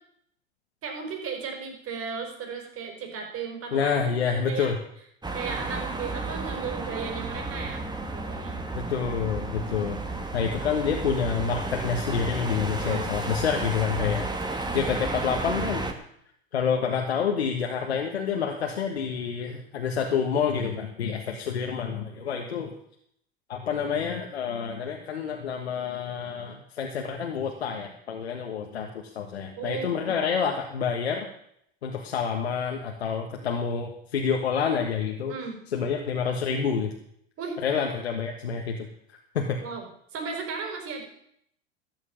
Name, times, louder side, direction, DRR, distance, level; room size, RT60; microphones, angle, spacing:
voice 1, 0.8-4.0 4.3-4.7 5.3-7.9 8.1-8.6 12.8-13.1 29.6-30.1 35.3-35.6 37.4-37.6 39.6-39.8 40.1-41.0, right 5 dB, 45° right, 3 dB, 4.7 m, -35 dB
voice 2, 3.7-4.8 8.7-15.8 16.5-22.8 23.5-31.3 31.8-35.3 35.7-36.9 37.6-38.8 39.1-39.6, left 6 dB, 90° left, 2 dB, 1.5 m, -28 dB
sound 1, 5.2-15.9, right 2 dB, 15° right, 2.2 m, -32 dB
13.5 x 9.7 x 7.2 m, 0.71 s
hypercardioid pair, 85°, 31 cm